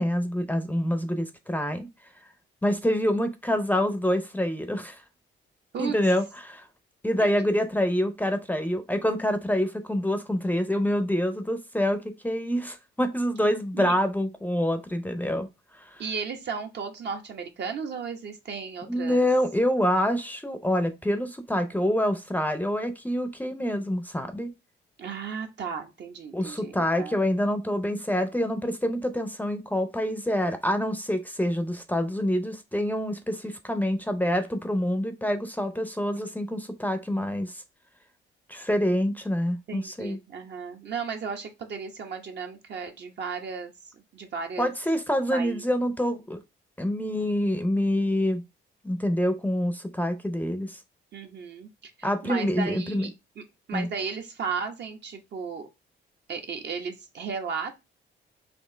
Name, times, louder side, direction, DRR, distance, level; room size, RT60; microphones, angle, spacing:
voice 1, 0.0-1.9 2.6-5.0 5.8-6.7 7.0-15.5 15.7-16.0 18.9-24.5 26.3-37.6 38.5-40.2 44.6-46.4 46.8-48.4 48.8-50.8 52.0-53.1 53.7-53.9, equal, 10° left, 0.6 m, -26 dB
voice 2, 7.2-7.6 13.7-14.0 16.0-19.3 25.0-27.2 39.7-44.7 45.3-45.6 51.1-53.4 53.7-55.7 56.3-57.8, right 5 dB, 60° right, 1.0 m, -35 dB
4.4 x 2.7 x 3.3 m
cardioid pair, 90°, 20 cm